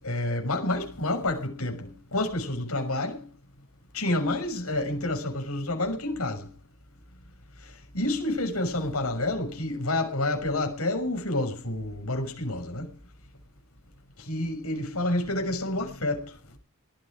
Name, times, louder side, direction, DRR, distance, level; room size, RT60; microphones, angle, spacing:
voice 1, 0.0-3.3 3.9-6.5 7.6-12.9 14.2-16.4, left 2 dB, 85° left, 6.1 m, -29 dB
18.5 x 13.5 x 5.0 m
head